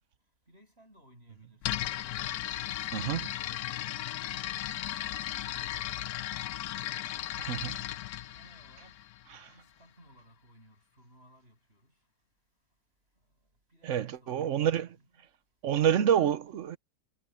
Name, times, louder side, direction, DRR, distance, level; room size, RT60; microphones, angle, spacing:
voice 1, 0.5-1.8 2.2-3.9 4.3-5.3 5.6-6.5 7.7-9.1 9.5-11.9 13.7-15.3, equal, 35° right, 7.6 m, -60 dB
sound 1, 1.6-9.4, left 13 dB, 70° left, 1.0 m, -36 dB
voice 2, 7.4-7.8 9.4-9.5 13.8-14.9 15.6-16.8, right 9 dB, 55° right, 1.0 m, -28 dB
omnidirectional pair, 1.8 m